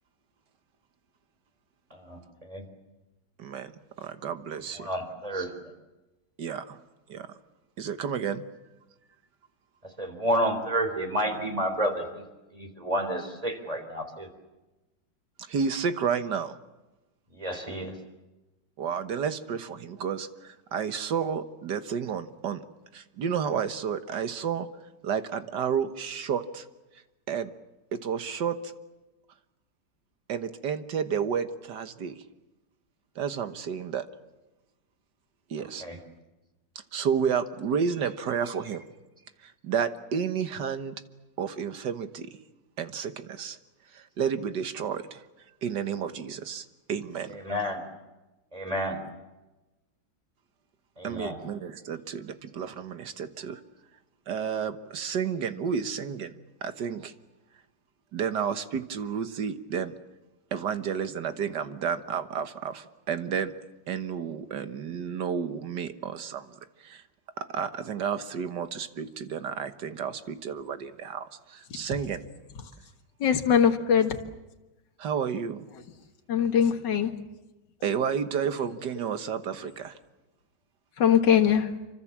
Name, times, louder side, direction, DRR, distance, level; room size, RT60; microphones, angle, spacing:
voice 1, 1.9-2.6 4.7-5.5 10.0-12.2 12.5-14.3 17.3-17.9 35.6-36.0 47.3-47.8 48.5-49.0 51.0-51.4, equal, 20° right, 5 dB, 4.0 m, -30 dB
voice 2, 3.4-3.7 4.0-4.9 6.4-6.8 7.1-7.3 7.8-8.4 15.5-16.6 18.8-22.6 22.9-24.7 25.0-26.7 27.3-27.5 27.9-28.6 30.3-32.1 33.2-34.1 35.5-35.8 36.9-38.9 39.4-41.0 41.4-42.3 42.8-43.6 43.9-45.2 45.6-47.4 51.0-53.6 54.3-56.3 56.6-57.1 58.1-59.9 60.5-63.5 63.9-66.5 66.8-67.0 67.4-72.2 75.0-75.7 77.8-80.0, right 7 dB, 70° right, 10 dB, 1.9 m, -31 dB
voice 3, 73.2-74.2 76.3-77.1 81.0-81.7, left 8 dB, 70° left, 5 dB, 2.3 m, -22 dB
28.0 x 25.0 x 7.4 m, 1.1 s
omnidirectional pair, 2.0 m